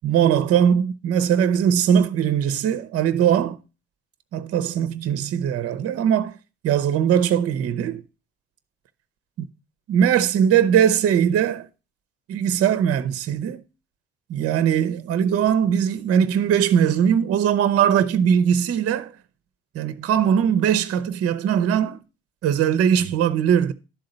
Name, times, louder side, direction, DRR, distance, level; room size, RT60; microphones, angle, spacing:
voice 1, 0.0-3.6 4.3-6.4 6.6-8.0 9.9-11.7 12.3-13.6 14.3-19.1 19.7-22.0 22.4-23.7, right 8 dB, 55° right, 0.8 m, -20 dB
11.5 x 3.8 x 5.3 m
hypercardioid pair, 60°, 29 cm